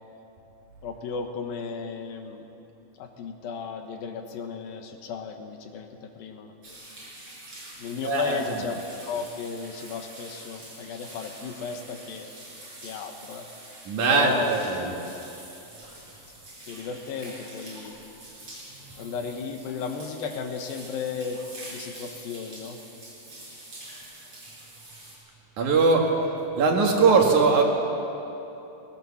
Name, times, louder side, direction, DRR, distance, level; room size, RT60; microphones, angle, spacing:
voice 1, 0.8-2.5 3.0-6.5 7.8-12.3 12.8-13.5 14.0-14.5 16.6-18.0 19.0-21.4 21.7-22.8 23.5-23.7, left 5 dB, 80° left, 5 dB, 3.1 m, -34 dB
sound 1, 6.6-25.1, right 1 dB, 30° right, 6.7 m, -45 dB
voice 2, 8.0-8.4 13.9-14.9 18.8-18.9 25.6-26.0 26.6-27.6, right 4 dB, 60° right, 0 dB, 3.2 m, -20 dB
20.0 x 18.5 x 7.2 m, 3.0 s
omnidirectional pair, 4.2 m